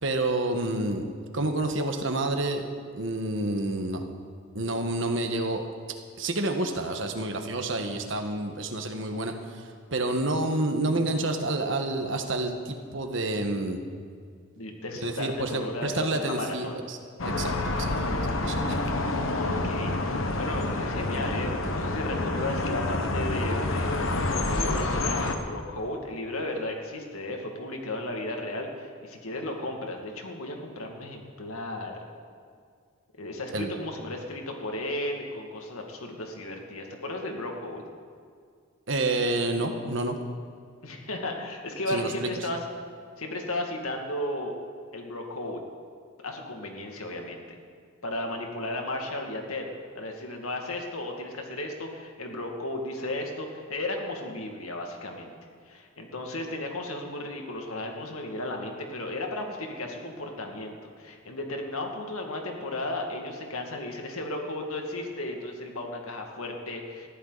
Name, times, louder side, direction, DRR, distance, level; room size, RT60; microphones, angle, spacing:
voice 1, 0.0-1.1 1.3-4.0 4.5-13.8 15.0-17.0 17.2-18.9 33.5-33.7 38.9-40.2 41.9-42.5, right 2 dB, 60° right, 5 dB, 1.5 m, -29 dB
voice 2, 14.6-16.8 19.3-32.0 33.2-37.8 40.8-42.6 43.2-44.5 44.9-45.6 46.2-47.4 48.0-49.7 49.9-55.3 55.7-67.1, left 1 dB, 90° left, 2 dB, 2.3 m, -34 dB
sound 1, 17.2-25.4, left 2 dB, 70° left, 1.3 m, -28 dB
20.0 x 14.5 x 4.1 m, 2.2 s
head